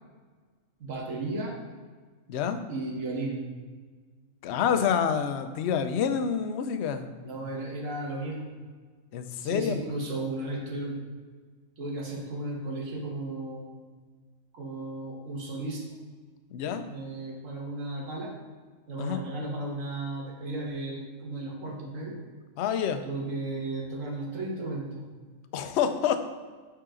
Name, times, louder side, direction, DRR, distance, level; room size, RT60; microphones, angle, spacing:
voice 1, 0.8-1.6 2.7-3.4 7.2-8.5 9.4-11.0 11.8-13.7 14.5-15.9 16.9-18.3 18.9-22.2 23.0-25.0, right 2 dB, 75° right, -1 dB, 1.7 m, -34 dB
voice 2, 2.3-2.6 4.4-7.0 9.1-9.8 16.5-16.9 19.0-19.2 22.6-23.0 25.5-26.3, left 7 dB, 65° left, 9 dB, 0.8 m, -27 dB
8.5 x 4.9 x 3.7 m, 1.5 s
omnidirectional pair, 1.4 m